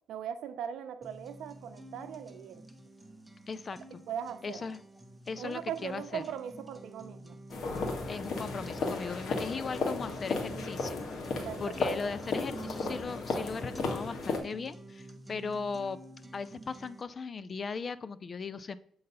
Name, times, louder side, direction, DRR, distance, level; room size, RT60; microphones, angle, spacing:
voice 1, 0.1-2.6 4.1-4.7 5.4-7.4 11.2-11.8, right 9 dB, 75° right, 0.7 m, -39 dB
sound 1, 1.0-17.0, right 1 dB, 5° right, 0.8 m, -49 dB
voice 2, 3.5-4.0 4.4-4.8 5.3-6.2 8.1-11.0 11.6-16.0 16.3-18.8, left 5 dB, 35° left, 0.4 m, -38 dB
sound 2, 7.5-14.4, left 3 dB, 60° left, 1.7 m, -34 dB
7.7 x 3.9 x 5.4 m
cardioid pair, 120°, 0 cm